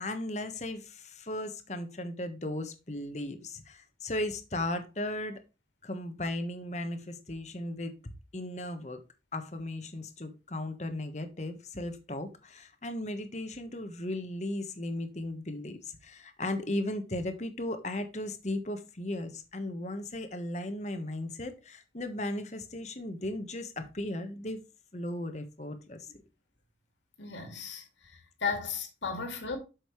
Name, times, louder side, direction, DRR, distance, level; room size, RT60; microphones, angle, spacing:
voice 1, 0.0-5.4 5.8-7.9 8.3-9.0 9.3-24.6 24.9-26.1, left 1 dB, 40° left, 1.2 m, -36 dB
voice 2, 27.2-29.6, left 5 dB, 90° left, 2.3 m, -35 dB
8.3 x 6.4 x 3.1 m
head